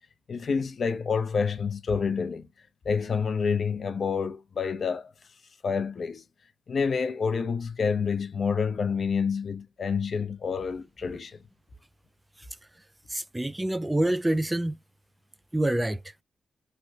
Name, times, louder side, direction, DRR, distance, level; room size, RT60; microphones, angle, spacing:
voice 1, 0.3-2.5 2.8-5.1 5.6-6.2 6.7-11.4, left 5 dB, 60° left, 0.7 m, -28 dB
voice 2, 13.1-14.8 15.5-16.1, right 1 dB, 15° right, 0.3 m, -27 dB
3.3 x 2.5 x 2.7 m
cardioid pair, 60°, 0 cm